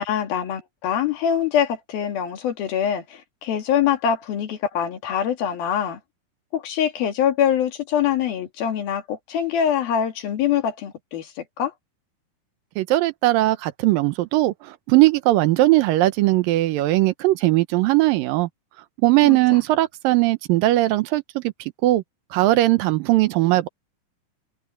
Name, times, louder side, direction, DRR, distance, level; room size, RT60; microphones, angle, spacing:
voice 1, 0.0-6.0 6.5-11.7 19.2-19.6, left 9 dB, 85° left, 4.2 m, -24 dB
voice 2, 12.8-18.5 19.0-22.0 22.3-23.7, right 17 dB, 80° right, 2.4 m, -19 dB
omnidirectional pair, 4.2 m